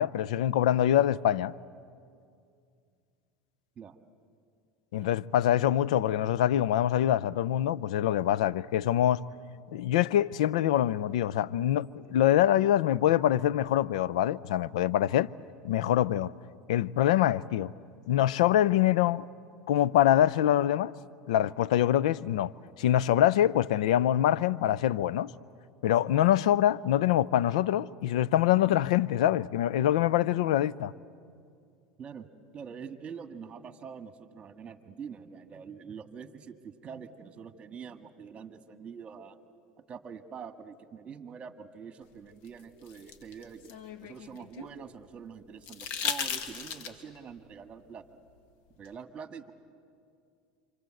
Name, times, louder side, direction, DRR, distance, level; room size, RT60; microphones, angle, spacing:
voice 1, 0.0-1.5 4.9-9.2 9.7-15.3 15.6-16.3 16.7-17.7 18.1-19.3 19.7-20.9 21.3-22.5 22.8-25.3 25.8-30.9, left 12 dB, 85° left, 0.6 m, -25 dB
voice 2, 32.5-39.4 39.9-43.7 44.0-48.2 48.8-49.5, right 6 dB, 35° right, 1.9 m, -45 dB
sound 1, 42.5-44.7 45.6-47.2 48.9-49.0, left 7 dB, 60° left, 2.2 m, -36 dB
28.5 x 25.5 x 7.9 m
supercardioid pair, 105°, 4 cm